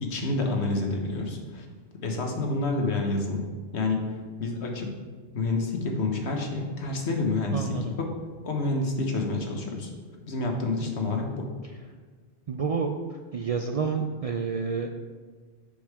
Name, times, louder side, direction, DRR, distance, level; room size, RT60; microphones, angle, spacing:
voice 1, 0.0-1.7 2.0-3.4 3.7-4.9 5.3-8.1 8.4-9.9 10.3-11.5, left 2 dB, 90° left, 2 dB, 1.4 m, -28 dB
voice 2, 7.5-7.8 12.5-12.9 13.3-15.0, right 5 dB, 55° right, 4 dB, 0.4 m, -29 dB
7.1 x 5.6 x 4.7 m, 1.5 s
omnidirectional pair, 1.1 m